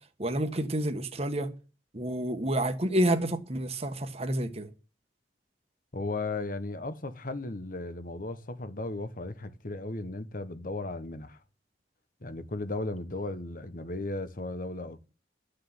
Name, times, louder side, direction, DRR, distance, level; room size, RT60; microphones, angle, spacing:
voice 1, 0.2-1.5 1.9-4.7, right 1 dB, 35° right, 1.5 m, -29 dB
voice 2, 5.9-11.4 12.2-15.0, left 2 dB, 50° left, 1.3 m, -36 dB
12.5 x 6.6 x 9.8 m
head